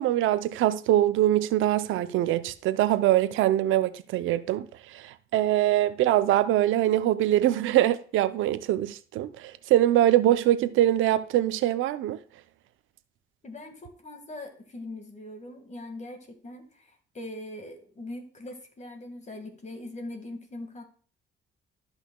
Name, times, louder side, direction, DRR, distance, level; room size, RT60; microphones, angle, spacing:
voice 1, 0.0-4.7 4.9-12.2, right 13 dB, 85° right, 0.6 m, -23 dB
voice 2, 13.4-20.8, left 1 dB, 35° left, 1.8 m, -41 dB
13.0 x 5.6 x 2.2 m
cardioid pair, 90°, 20 cm